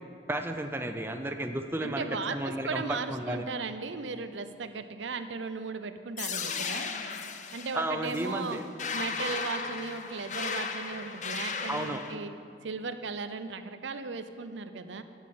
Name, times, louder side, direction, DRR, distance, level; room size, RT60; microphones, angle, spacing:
voice 1, 0.3-2.1 2.3-3.5 7.7-8.7 11.7-12.0, right 1 dB, 10° right, 5 dB, 0.5 m, -33 dB
voice 2, 1.8-2.4 2.6-6.9 7.5-8.6 8.9-12.3 12.6-15.0, right 4 dB, 85° right, 10 dB, 0.7 m, -36 dB
sound 1, 6.2-12.2, left 5 dB, 40° left, 0.7 m, -35 dB
11.5 x 7.3 x 8.5 m, 2.5 s
head